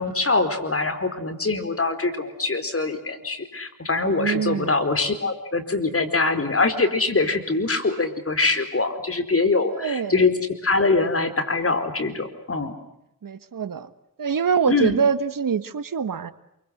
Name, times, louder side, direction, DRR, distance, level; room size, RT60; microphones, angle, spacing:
voice 1, 0.0-10.3 10.6-12.7 14.7-15.0, left 3 dB, 40° left, 8 dB, 4.6 m, -23 dB
voice 2, 4.1-4.7 9.7-10.2 13.2-13.9 14.2-16.3, right 6 dB, 70° right, 13 dB, 1.6 m, -24 dB
28.0 x 24.5 x 8.0 m, 0.83 s
wide cardioid pair, 75°, 34 cm